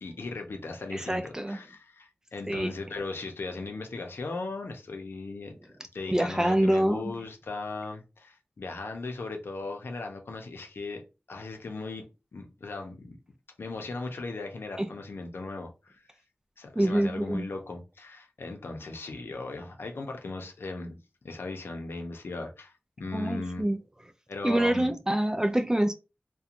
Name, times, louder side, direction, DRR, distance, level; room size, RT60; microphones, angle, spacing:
voice 1, 0.0-11.0 11.3-12.1 12.3-13.2 13.6-16.0 16.6-23.7 24.3-24.9, left 3 dB, 90° left, 0.6 m, -38 dB
voice 2, 0.9-1.6 2.5-2.7 6.1-7.1 14.8-14.9 16.8-17.5 23.1-23.8 24.4-25.9, right 1 dB, 15° right, 0.3 m, -26 dB
2.8 x 2.2 x 2.4 m
wide cardioid pair, 75°, 4 cm